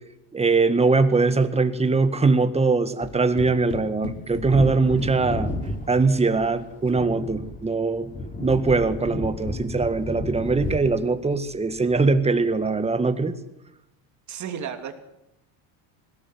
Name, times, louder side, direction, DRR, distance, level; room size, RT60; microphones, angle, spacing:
voice 1, 0.3-5.5 5.9-8.1 8.4-13.4, right 3 dB, 15° right, 10 dB, 1.7 m, -21 dB
sound 1, 3.0-6.2, left 5 dB, 60° left, 3.9 m, -38 dB
Wind / Thunder, 4.3-12.6 12.8-12.9, left 1 dB, 20° left, 2.8 m, -33 dB
voice 2, 14.3-15.0, right 8 dB, 45° right, 6 dB, 2.9 m, -33 dB
21.0 x 17.5 x 7.8 m, 0.88 s
supercardioid pair, 105°, 41 cm